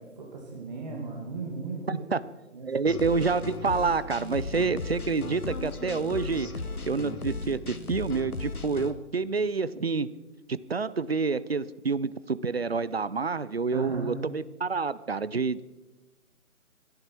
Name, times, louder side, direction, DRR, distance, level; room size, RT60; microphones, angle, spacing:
voice 1, 0.0-2.1 2.5-2.7 13.7-14.2, right 4 dB, 30° right, -1 dB, 2.2 m, -36 dB
voice 2, 1.9-2.2 2.6-6.5 6.9-10.1 10.5-15.6, right 4 dB, 45° right, 17 dB, 0.5 m, -28 dB
sound 1, 2.9-8.9, left 3 dB, 85° left, 1.5 m, -36 dB
23.5 x 10.5 x 4.5 m, 1.1 s
figure-of-eight pair, 160°, 43 cm